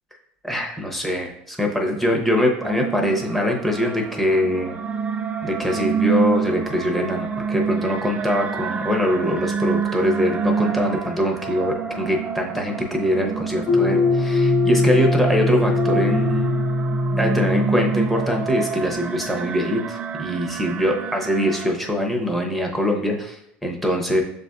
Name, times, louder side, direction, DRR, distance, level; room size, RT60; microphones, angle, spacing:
voice 1, 0.4-4.8 5.4-16.6 17.2-24.2, equal, 5° left, 1 dB, 0.8 m, -23 dB
sound 1, 2.6-21.7, right 6 dB, 25° right, 0.3 m, -28 dB
sound 2, 13.7-18.9, left 2 dB, 60° left, 1.1 m, -21 dB
7.0 x 2.5 x 2.3 m, 0.76 s
supercardioid pair, 115°, 5 cm